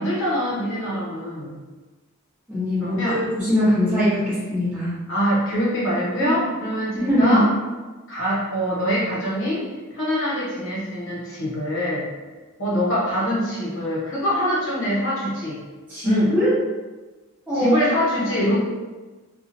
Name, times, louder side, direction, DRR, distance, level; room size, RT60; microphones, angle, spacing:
voice 1, 0.0-1.6 2.8-3.2 5.1-7.5 8.1-9.7 9.9-12.1 12.6-15.6 16.0-16.3 17.5-18.6, equal, 55° left, -6 dB, 0.9 m, -24 dB
voice 2, 2.5-4.9 6.2-6.4 7.1-7.4 15.9-16.6 17.5-17.8, left 1 dB, 5° right, -13 dB, 1.0 m, -21 dB
2.8 x 2.4 x 2.5 m, 1.3 s
head